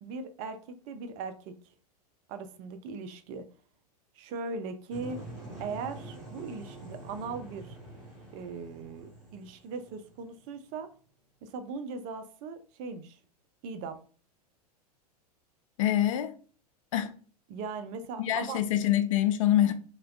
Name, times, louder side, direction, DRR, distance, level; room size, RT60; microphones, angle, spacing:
voice 1, 0.0-1.6 2.3-3.5 4.1-5.2 5.6-7.8 8.3-10.9 11.4-13.2 13.6-14.0 17.5-18.6, right 4 dB, 35° right, 0.4 m, -39 dB
sound 1, 4.9-10.8, right 2 dB, 5° left, 1.5 m, -46 dB
voice 2, 15.8-16.4 16.9-17.2 18.2-19.7, left 12 dB, 55° left, 0.4 m, -25 dB
3.3 x 2.2 x 2.3 m
figure-of-eight pair, 95°, 20 cm